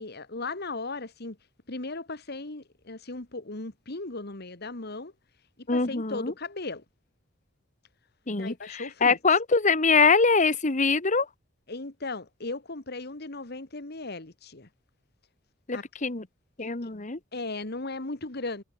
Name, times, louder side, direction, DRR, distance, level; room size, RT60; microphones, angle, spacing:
voice 1, 0.0-1.4 1.7-5.1 5.6-6.8 8.3-9.2 11.7-14.7 15.7-15.8 16.6-16.9 17.3-18.6, left 3 dB, 55° left, 2.1 m, -37 dB
voice 2, 5.7-6.3 8.3-11.3 15.7-16.2 16.6-17.2, left 4 dB, 40° left, 1.5 m, -23 dB
head